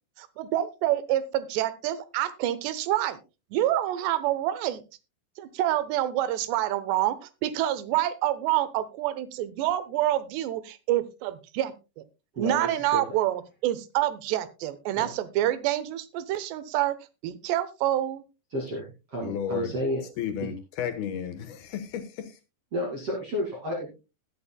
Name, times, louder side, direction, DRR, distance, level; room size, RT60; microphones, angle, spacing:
voice 1, 0.2-3.2 3.5-4.8 5.4-12.0 12.4-17.0 17.2-18.2, right 13 dB, 80° right, 14 dB, 3.0 m, -27 dB
voice 2, 12.3-13.0 15.0-15.1 18.5-18.8 19.1-20.0 20.4-20.5 22.7-24.0, equal, 40° right, -3 dB, 3.0 m, -31 dB
voice 3, 19.2-19.7 20.2-22.4, left 8 dB, 70° left, 7 dB, 2.8 m, -33 dB
20.5 x 8.4 x 2.2 m, 0.28 s
omnidirectional pair, 4.9 m